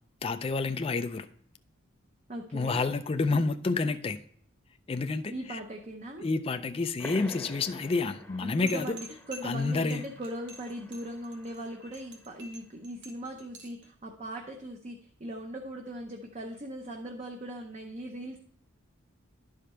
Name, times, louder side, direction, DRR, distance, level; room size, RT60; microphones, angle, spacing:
voice 1, 0.2-1.3 2.5-4.2 4.9-5.6 6.2-9.0 9.4-10.1, left 3 dB, 25° left, 9 dB, 0.4 m, -29 dB
voice 2, 2.3-2.8 5.3-6.2 8.4-18.4, right 1 dB, 30° right, 2 dB, 0.7 m, -39 dB
sound 1, 7.0-12.2, equal, 5° left, 0.9 m, -48 dB
sound 2, 8.7-13.9, right 1 dB, 55° right, 1.7 m, -48 dB
11.5 x 5.0 x 4.3 m, 0.63 s
head